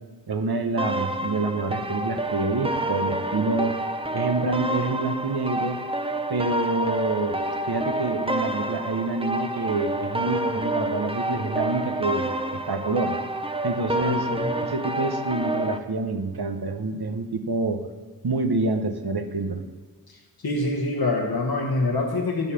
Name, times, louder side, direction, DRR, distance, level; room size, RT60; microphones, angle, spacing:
voice 1, 0.3-3.8 4.1-5.8 6.3-7.4 7.7-12.3 12.7-13.2 13.6-14.3 14.5-17.8 18.2-19.6, right 3 dB, 85° right, 6 dB, 0.9 m, -27 dB
sound 1, 0.8-15.8, right 1 dB, 15° right, 0.5 m, -28 dB
voice 2, 14.0-14.5 20.4-22.5, left 2 dB, 75° left, 0 dB, 1.3 m, -25 dB
10.5 x 4.3 x 6.9 m, 1.4 s
wide cardioid pair, 45°, 37 cm